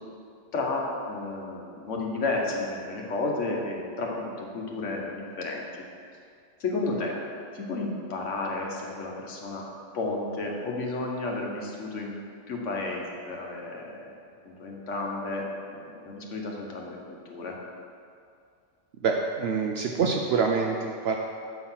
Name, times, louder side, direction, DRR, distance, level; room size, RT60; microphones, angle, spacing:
voice 1, 0.5-5.7 6.6-7.2 7.5-9.6 9.9-12.1 12.5-14.1 14.4-17.6, left 3 dB, 80° left, -1 dB, 1.4 m, -32 dB
voice 2, 19.0-21.2, right 5 dB, 65° right, 2 dB, 0.7 m, -26 dB
7.8 x 4.2 x 5.6 m, 2.4 s
omnidirectional pair, 1.2 m